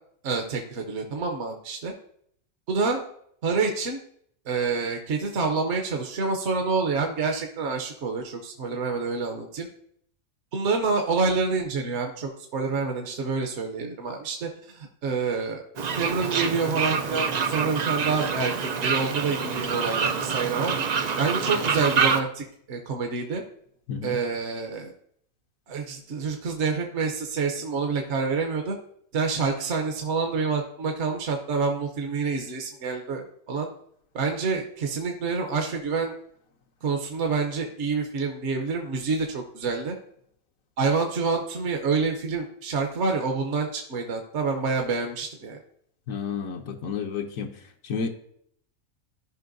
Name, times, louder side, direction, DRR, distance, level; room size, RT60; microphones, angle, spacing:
voice 1, 0.2-1.9 2.7-3.1 3.4-4.0 4.5-9.7 10.5-15.6 15.9-20.7 21.2-23.4 24.0-24.9 25.7-28.8 29.1-33.7 34.1-36.1 36.8-40.0 40.8-45.6, right 4 dB, 60° right, 3 dB, 1.1 m, -27 dB
Fowl, 15.8-22.2, right 6 dB, 80° right, 0.3 m, -26 dB
voice 2, 46.1-47.5 47.8-48.1, left 6 dB, 75° left, 4 dB, 1.1 m, -31 dB
13.5 x 5.3 x 2.6 m, 0.67 s
omnidirectional pair, 1.5 m